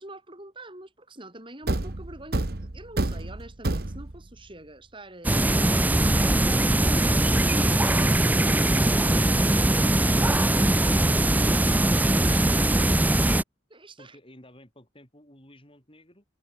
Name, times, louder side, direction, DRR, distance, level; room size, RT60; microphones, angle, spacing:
voice 1, 0.0-6.1 6.8-10.8 13.7-14.2, right 1 dB, 25° right, 7.4 m, -45 dB
Thump thud, 1.6-4.3, right 2 dB, 50° right, 1.3 m, -29 dB
sound 1, 5.2-13.4, right 1 dB, 10° right, 0.5 m, -21 dB
voice 2, 14.0-16.2, left 1 dB, 25° left, 7.7 m, -52 dB
head